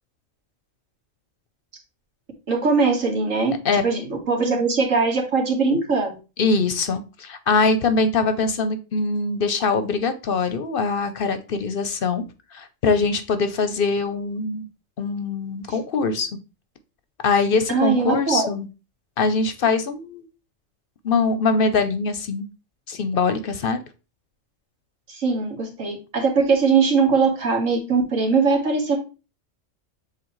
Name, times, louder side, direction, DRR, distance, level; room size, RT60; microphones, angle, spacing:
voice 1, 2.5-3.5 3.8-6.2 17.7-18.5 25.1-29.0, right 4 dB, 80° right, 1 dB, 2.0 m, -21 dB
voice 2, 6.4-12.2 12.5-14.7 15.0-16.3 17.2-18.7 19.2-20.2 21.0-22.5 22.9-23.8, left 4 dB, 55° left, 10 dB, 0.8 m, -22 dB
7.6 x 3.9 x 3.1 m, 0.31 s
omnidirectional pair, 1.3 m